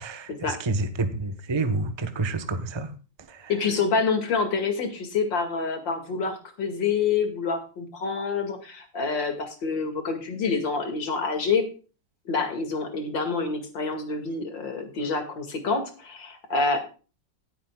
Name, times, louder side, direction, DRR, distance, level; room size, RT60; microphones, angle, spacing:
voice 1, 0.0-2.9 3.3-3.5, right 3 dB, 20° right, 9 dB, 0.8 m, -29 dB
voice 2, 3.5-11.6 12.3-16.8, left 4 dB, 75° left, 6 dB, 2.9 m, -27 dB
18.5 x 8.4 x 2.3 m, 0.35 s
omnidirectional pair, 2.0 m